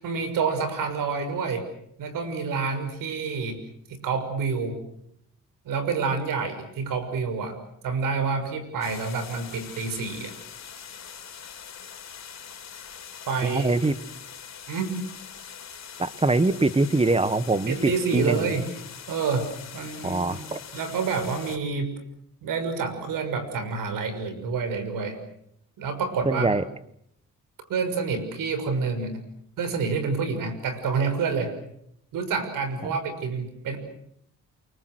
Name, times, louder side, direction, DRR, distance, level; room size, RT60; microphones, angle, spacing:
voice 1, 0.0-1.7 2.0-3.6 4.0-4.8 5.6-7.6 7.8-10.3 13.3-13.8 14.7-15.0 17.7-18.6 19.1-20.4 20.7-21.9 22.4-25.2 25.8-26.5 27.7-29.2 29.6-31.5 32.1-33.8, right 5 dB, 85° right, 9 dB, 6.2 m, -28 dB
sound 1, 8.8-21.6, left 8 dB, 55° left, 4.3 m, -43 dB
voice 2, 13.5-14.0 16.0-18.6 20.0-20.6 26.2-26.6, right 2 dB, 20° right, 15 dB, 1.5 m, -23 dB
29.5 x 24.0 x 6.3 m, 0.73 s
cardioid pair, 95°, 32 cm